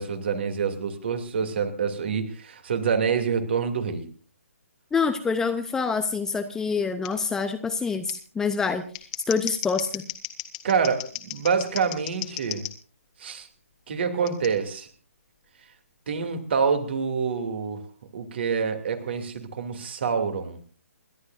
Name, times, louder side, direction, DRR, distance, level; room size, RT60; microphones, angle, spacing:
voice 1, 0.0-4.0 10.6-12.7 13.2-13.5 13.9-14.9 16.1-17.8 18.1-20.6, right 6 dB, 50° right, 7 dB, 2.7 m, -26 dB
voice 2, 4.9-8.8 9.3-10.0, left 5 dB, 5° left, 8 dB, 0.7 m, -26 dB
Scissors, 7.0-7.1 8.1-8.2 8.8-12.7 14.3-14.5, left 15 dB, 30° left, 1.7 m, -35 dB
28.5 x 12.0 x 2.6 m, 0.40 s
figure-of-eight pair, 135°, 8 cm